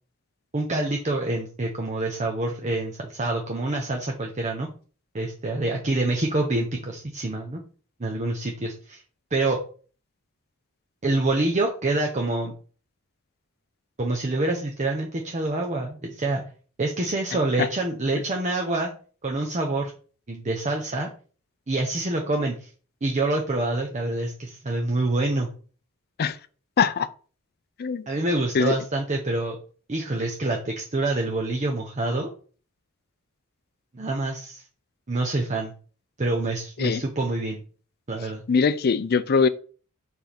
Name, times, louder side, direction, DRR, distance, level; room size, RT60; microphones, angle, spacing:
voice 1, 0.5-4.7 5.1-7.6 8.0-9.0 9.3-9.6 11.0-12.5 14.0-16.4 16.8-18.9 19.2-19.9 20.3-21.1 21.7-22.7 23.0-25.5 28.1-29.6 29.9-32.3 33.9-34.6 35.1-35.7 36.2-37.6 38.1-38.4, right 2 dB, 35° right, 0.8 m, -26 dB
voice 2, 26.8-27.1 27.8-28.1 28.5-28.8 36.8-37.0 38.5-39.5, left 5 dB, 45° left, 0.4 m, -21 dB
4.6 x 4.4 x 5.2 m
head